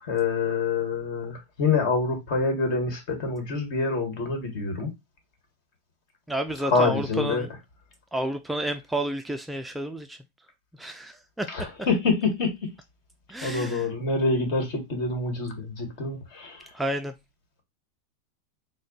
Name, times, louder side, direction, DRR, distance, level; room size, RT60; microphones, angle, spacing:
voice 1, 0.0-4.9 6.6-7.5 11.5-12.5 13.4-16.7, left 4 dB, 55° left, 1.7 m, -26 dB
voice 2, 6.3-7.5 8.1-10.2 10.8-11.5 13.3-13.9 16.7-17.1, right 1 dB, 5° right, 0.3 m, -30 dB
4.3 x 2.1 x 3.9 m
supercardioid pair, 135°, 0 cm